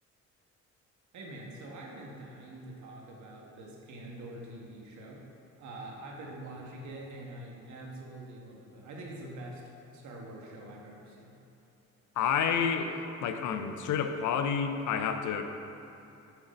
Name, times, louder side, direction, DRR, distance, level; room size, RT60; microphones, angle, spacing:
voice 1, 1.1-5.2 5.6-9.6 9.9-11.3, right 1 dB, 70° right, -1 dB, 1.3 m, -45 dB
voice 2, 12.2-15.4, left 7 dB, 75° left, 7 dB, 0.6 m, -29 dB
7.2 x 4.0 x 5.4 m, 2.9 s
cardioid pair, 90°, 30 cm